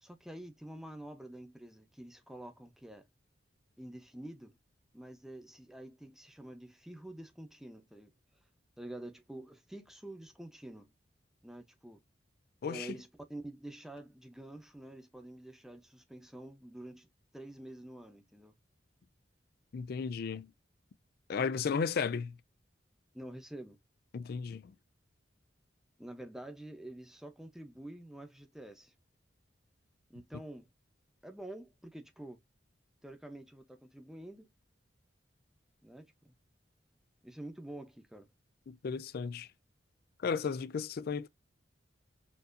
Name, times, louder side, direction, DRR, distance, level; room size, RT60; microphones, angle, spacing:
voice 1, 0.0-3.1 3.8-4.6 4.9-8.1 8.8-10.9 11.4-12.0 12.7-17.1 17.3-18.5 23.1-23.8 26.0-28.9 30.1-30.7 31.2-32.4 33.0-34.5 35.8-36.3 37.2-38.3, right 1 dB, ahead, 0.8 m, -48 dB
voice 2, 12.6-13.0 19.7-20.5 21.3-22.4 24.1-24.7 38.7-39.5 40.2-41.3, left 5 dB, 55° left, 0.4 m, -34 dB
4.3 x 2.7 x 2.5 m
head